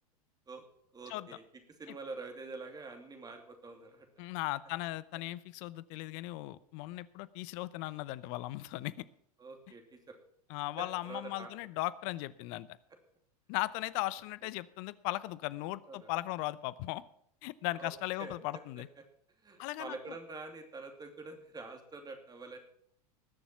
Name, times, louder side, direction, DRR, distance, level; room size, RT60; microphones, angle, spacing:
voice 1, 0.9-1.4 1.8-4.3 9.4-10.1 10.8-11.5 15.9-16.1 17.8-17.9 18.2-18.6 19.4-22.6, right 3 dB, 20° right, 5 dB, 2.8 m, -46 dB
voice 2, 4.2-8.9 10.5-12.7 13.5-17.0 17.4-18.9 19.6-20.2, left 18 dB, 50° left, 18 dB, 0.8 m, -37 dB
20.0 x 7.2 x 5.9 m, 0.69 s
hypercardioid pair, 90°, 20 cm